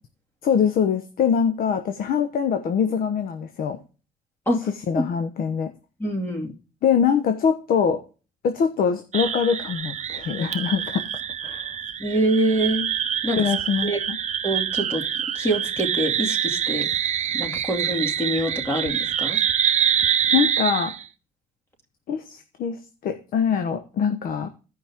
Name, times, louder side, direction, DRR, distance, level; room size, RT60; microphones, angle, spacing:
voice 1, 0.4-3.8 4.9-5.7 6.8-8.0 8.4-11.0 11.4-11.7 13.4-14.2 20.3-20.9 22.1-24.5, left 7 dB, 60° left, 8 dB, 1.1 m, -23 dB
voice 2, 6.0-6.5 12.0-12.9 13.2-13.5 13.8-14.0 14.4-15.0 15.3-16.9 17.3-19.4, right 1 dB, 15° left, 2 dB, 2.6 m, -25 dB
sound 1, 9.1-21.0, right 9 dB, 45° right, 0.8 m, -26 dB
14.5 x 5.4 x 3.6 m, 0.34 s
cardioid pair, 110°, 17 cm